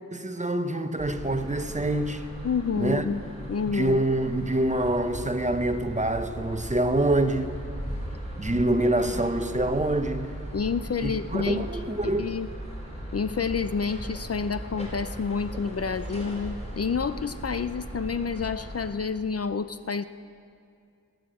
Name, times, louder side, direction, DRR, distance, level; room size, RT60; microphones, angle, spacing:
voice 1, 0.1-2.3 2.7-3.0 3.7-7.5 8.4-10.3 11.0-12.3, right 1 dB, 20° right, 8 dB, 0.8 m, -26 dB
sound 1, 1.0-18.9, equal, 20° left, 4.1 m, -38 dB
voice 2, 2.4-4.0 10.5-11.6 12.0-12.5 13.1-20.0, left 5 dB, 50° left, 12 dB, 0.4 m, -29 dB
16.5 x 9.4 x 7.6 m, 2.4 s
wide cardioid pair, 70°, 32 cm